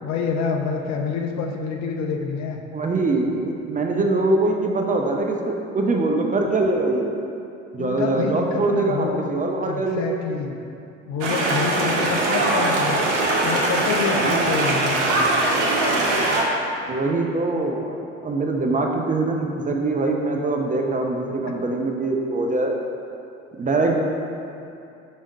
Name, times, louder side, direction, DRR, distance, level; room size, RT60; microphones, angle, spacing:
voice 1, 0.0-2.6 7.8-9.3 9.6-10.6 11.0-13.0 13.4-15.3 21.4-21.5, left 5 dB, 45° left, 3 dB, 0.7 m, -27 dB
voice 2, 2.7-7.1 7.7-10.2 14.2-14.7 16.9-18.0 18.2-22.8 23.6-24.0, right 2 dB, 20° right, 1 dB, 0.6 m, -23 dB
sound 1, 11.2-16.4, right 2 dB, 70° right, 1.1 m, -21 dB
5.3 x 3.5 x 5.2 m, 2.7 s
hypercardioid pair, 65°, 37 cm